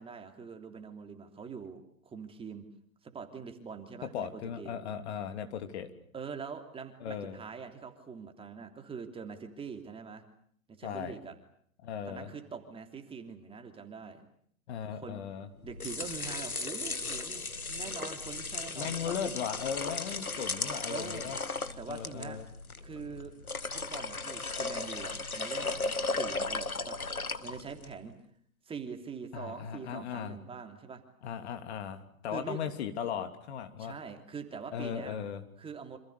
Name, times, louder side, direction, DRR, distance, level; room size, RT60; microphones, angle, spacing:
voice 1, 0.0-2.6 3.0-4.8 6.1-10.2 10.7-11.3 12.1-14.3 14.9-15.2 15.6-19.1 20.9-21.4 21.8-22.4 22.8-23.3 23.7-27.0 27.4-28.2 28.6-31.0 32.3-32.6 33.8-35.2 35.6-36.0, right 5 dB, 15° right, 5 dB, 3.2 m, -44 dB
voice 2, 4.1-5.9 7.0-7.4 10.8-11.2 11.8-12.3 14.7-15.5 18.7-21.4 21.9-22.5 29.3-30.4 31.2-34.0 34.7-35.4, left 8 dB, 50° left, 8 dB, 3.2 m, -37 dB
sound 1, 15.6-27.9, left 3 dB, 90° left, 1.9 m, -36 dB
28.5 x 27.5 x 6.8 m, 0.62 s
figure-of-eight pair, 115°, 42 cm